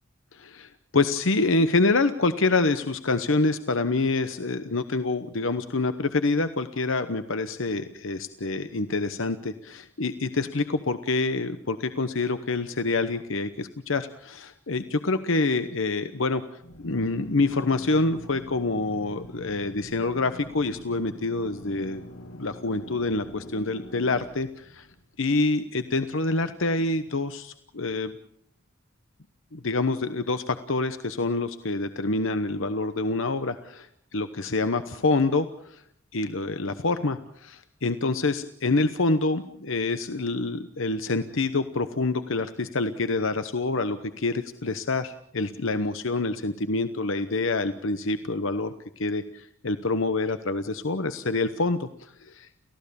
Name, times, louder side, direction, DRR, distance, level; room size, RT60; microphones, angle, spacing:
voice 1, 0.3-22.0 22.3-24.9 25.2-28.1 29.5-33.9 34.1-35.8 36.1-52.5, left 3 dB, 70° left, 10 dB, 1.0 m, -26 dB
Drill, 16.6-25.2, left 1 dB, 90° left, 2.5 m, -44 dB
30.0 x 15.5 x 7.0 m, 0.71 s
head